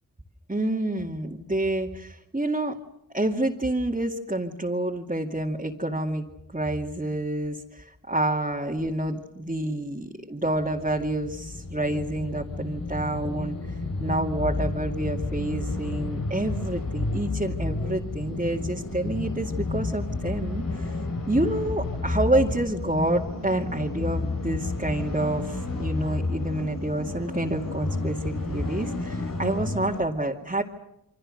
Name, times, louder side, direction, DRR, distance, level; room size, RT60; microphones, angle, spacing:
voice 1, 0.5-2.8 3.1-6.3 6.5-13.6 14.0-21.0 21.3-30.6, right 1 dB, 20° right, -2 dB, 2.4 m, -28 dB
sound 1, 10.6-30.0, left 2 dB, 65° left, 3.3 m, -31 dB
29.0 x 24.0 x 6.6 m, 0.85 s
cardioid pair, 45°, 37 cm